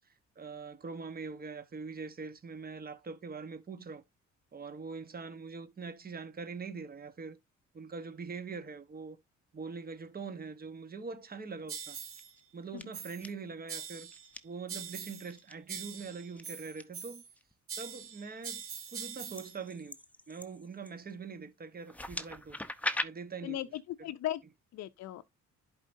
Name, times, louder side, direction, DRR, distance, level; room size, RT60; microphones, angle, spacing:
voice 1, 0.4-4.0 4.5-7.4 7.7-9.2 9.5-12.0 12.5-14.1 14.4-17.2 17.8-18.6 18.9-20.0 20.3-22.6 23.0-23.6, right 4 dB, 30° right, 1.1 m, -43 dB
sound 1, 11.7-12.3 12.9-13.3 13.7-14.3 14.7-15.4 15.7-17.3 17.7-19.6, right 7 dB, 45° right, 1.4 m, -43 dB
sound 2, 11.9-12.4 12.8-13.3 14.1-14.4 15.3-15.5 16.3-16.8 17.4-17.8 18.4-21.1 21.8-23.0, left 1 dB, 5° left, 0.7 m, -40 dB
voice 2, 23.4-24.4 24.7-25.2, left 13 dB, 60° left, 0.5 m, -37 dB
11.0 x 4.7 x 2.6 m
cardioid pair, 90°, 30 cm